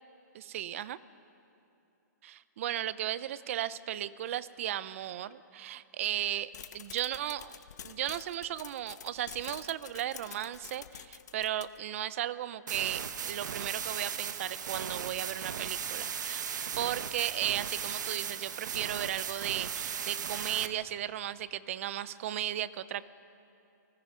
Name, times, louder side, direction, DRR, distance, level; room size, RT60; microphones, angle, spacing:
voice 1, 0.3-1.0 2.2-7.6 7.8-16.5 16.8-23.1, right 12 dB, 45° right, 16 dB, 0.7 m, -35 dB
sound 1, 6.5-11.9, left 9 dB, 65° left, 1.1 m, -48 dB
sound 2, 12.7-20.7, right 7 dB, 70° right, 1.3 m, -37 dB
29.0 x 19.5 x 5.1 m, 2.8 s
hypercardioid pair, 160°, 10 cm